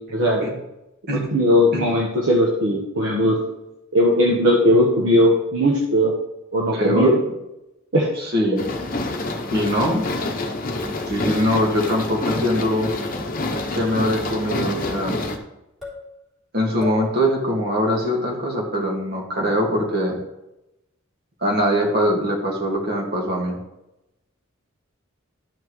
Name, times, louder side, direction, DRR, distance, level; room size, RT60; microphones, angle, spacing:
voice 1, 0.1-0.5 1.3-3.4 3.9-6.1 6.5-7.1 7.9-8.1, equal, 70° right, -2 dB, 1.2 m, -18 dB
voice 2, 6.7-7.1 8.2-8.6 9.5-10.0 11.1-12.9 13.7-15.2 16.5-20.2 21.4-23.6, equal, 50° right, -1 dB, 1.9 m, -22 dB
sound 1, 8.6-15.4, left 2 dB, 45° left, 0.8 m, -27 dB
sound 2, 9.8-10.2 10.8-11.2 11.8-12.1 12.8-13.1 13.8-14.1 14.8-15.1 15.8-16.1 16.8-17.1, left 1 dB, ahead, 3.4 m, -36 dB
12.0 x 5.7 x 3.1 m, 0.92 s
head